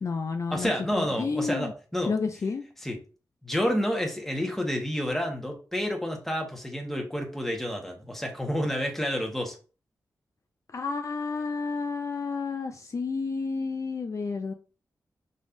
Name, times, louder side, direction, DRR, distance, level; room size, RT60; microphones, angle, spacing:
voice 1, 0.0-0.7 1.0-1.7 2.1-2.7 10.7-14.5, left 4 dB, 50° left, 6 dB, 0.4 m, -30 dB
voice 2, 0.5-2.1 2.8-3.0 3.4-9.6, equal, 5° left, 2 dB, 1.4 m, -29 dB
5.3 x 3.2 x 2.6 m, 0.36 s
cardioid pair, 75°, 7 cm